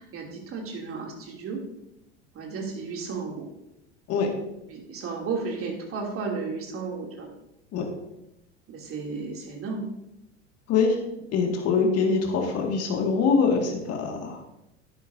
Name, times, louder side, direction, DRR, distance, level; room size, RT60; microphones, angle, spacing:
voice 1, 0.0-1.6 2.3-3.5 4.7-7.3 8.7-9.9, right 4 dB, 40° right, 0 dB, 2.9 m, -33 dB
voice 2, 10.7-11.0 11.3-14.4, left 5 dB, 45° left, 2 dB, 2.0 m, -24 dB
11.0 x 9.1 x 2.7 m, 0.87 s
hypercardioid pair, 85°, 35 cm